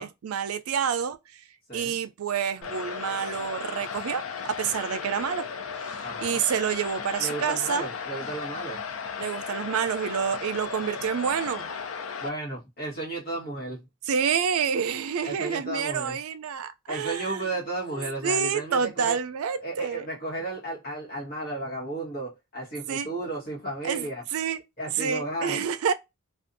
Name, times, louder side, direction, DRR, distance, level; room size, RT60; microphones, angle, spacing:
voice 1, 0.0-1.4 1.7-5.5 6.2-7.9 9.2-11.7 14.1-17.4 17.9-20.1 22.9-23.1 23.8-24.6 25.0-25.9, right 7 dB, 80° right, 0.4 m, -28 dB
sound 1, 2.6-12.3, left 6 dB, 70° left, 0.5 m, -35 dB
voice 2, 6.0-6.4 7.2-8.8 12.2-13.9 15.2-16.2 16.9-19.2 19.6-24.2 24.8-25.6, right 2 dB, 45° left, 1.2 m, -34 dB
2.6 x 2.3 x 2.5 m
head